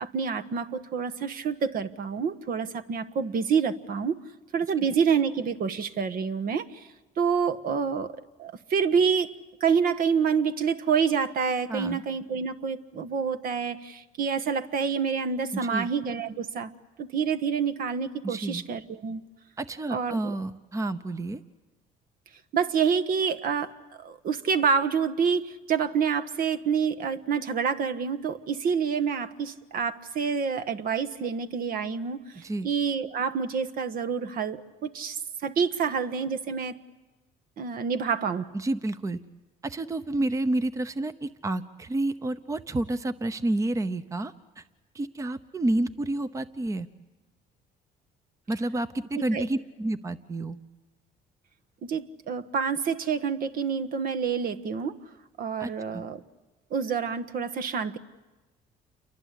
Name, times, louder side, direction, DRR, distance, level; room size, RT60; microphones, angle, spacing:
voice 1, 0.0-4.2 4.5-6.9 7.2-8.1 8.4-9.3 9.6-16.7 17.0-19.2 19.9-20.3 22.5-36.8 37.6-38.5 49.3-49.4 51.8-55.0 55.4-56.2 56.7-58.0, right 6 dB, 60° right, 10 dB, 1.3 m, -27 dB
voice 2, 11.7-12.0 15.5-15.9 18.2-18.6 19.6-21.4 32.4-32.7 38.5-39.2 39.6-44.6 44.9-46.9 48.5-50.6 55.6-56.0, right 2 dB, 20° right, 12 dB, 0.8 m, -30 dB
29.0 x 23.5 x 8.3 m, 1.1 s
cardioid pair, 110°, 17 cm